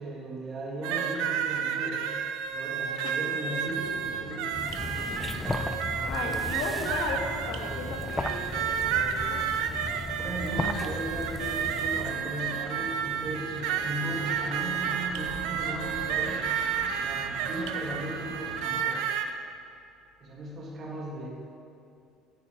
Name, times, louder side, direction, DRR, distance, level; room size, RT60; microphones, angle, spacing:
voice 1, 0.0-2.0 2.5-4.7 10.1-16.5 17.0-19.2 20.2-21.3, right 1 dB, 35° right, -3 dB, 2.0 m, -37 dB
sound 1, 0.8-19.3, right 8 dB, 80° right, 0.8 m, -31 dB
sound 2, 3.6-18.7, right 2 dB, 55° right, 1.9 m, -44 dB
sound 3, 4.5-12.2, left 2 dB, 10° left, 0.5 m, -36 dB
voice 2, 5.5-9.5, left 4 dB, 75° left, 2 dB, 1.7 m, -36 dB
14.0 x 9.5 x 4.6 m, 2.5 s
cardioid pair, 150°, 0 cm